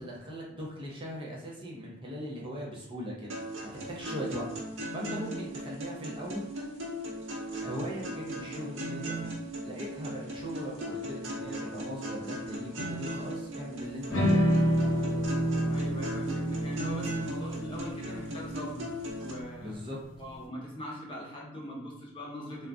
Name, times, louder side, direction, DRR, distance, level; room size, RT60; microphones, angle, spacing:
voice 1, 0.0-3.4 3.7-4.5 4.9-6.5 7.6-9.4 9.6-14.5 19.6-20.0, equal, 25° right, -3 dB, 0.6 m, -39 dB
sound 1, 3.3-19.3, right 1 dB, 85° right, 0.9 m, -38 dB
sound 2, 14.1-20.4, equal, 80° left, 0.8 m, -29 dB
voice 2, 15.7-18.9 19.2-19.7 20.2-22.7, equal, 25° left, -4 dB, 0.8 m, -41 dB
2.4 x 2.1 x 3.5 m, 0.84 s
head